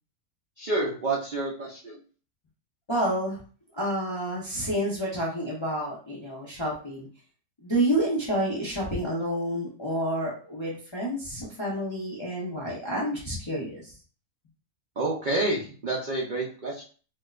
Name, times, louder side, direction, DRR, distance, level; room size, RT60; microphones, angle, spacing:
voice 1, 0.6-2.0 15.0-16.8, right 2 dB, 60° right, -3 dB, 0.5 m, -29 dB
voice 2, 2.9-3.4 3.7-7.1 7.6-13.9, right 1 dB, 35° left, -5 dB, 0.5 m, -29 dB
4.3 x 2.1 x 2.3 m, 0.40 s
omnidirectional pair, 1.6 m